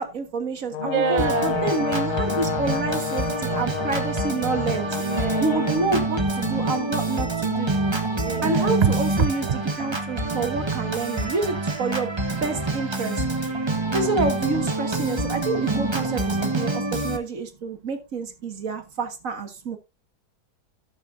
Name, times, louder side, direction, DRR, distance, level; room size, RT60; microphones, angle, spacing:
voice 1, 0.0-4.9 5.4-7.7 8.4-12.1 12.4-13.2 13.9-19.8, right 3 dB, 55° right, 1.9 m, -28 dB
Brass instrument, 0.7-5.9, left 11 dB, 85° left, 1.2 m, -30 dB
voice 2, 0.8-1.7 5.0-5.6 8.2-8.9, right 6 dB, 35° right, 0.7 m, -26 dB
Organ, 1.2-17.2, right 2 dB, 20° right, 1.1 m, -26 dB
17.5 x 6.3 x 2.6 m
omnidirectional pair, 1.7 m